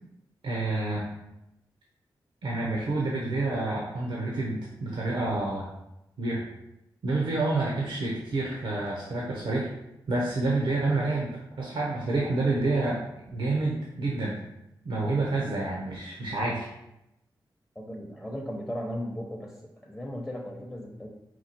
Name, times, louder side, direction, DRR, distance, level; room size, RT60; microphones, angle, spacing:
voice 1, 0.4-1.1 2.4-5.7 6.2-6.4 7.0-9.7 10.1-13.0 13.3-14.3 14.8-16.7, right 2 dB, 70° right, -3 dB, 0.8 m, -28 dB
voice 2, 17.8-19.6 19.8-21.1, equal, 10° left, -1 dB, 0.7 m, -36 dB
4.4 x 2.4 x 4.2 m, 0.88 s
cardioid pair, 50°, 9 cm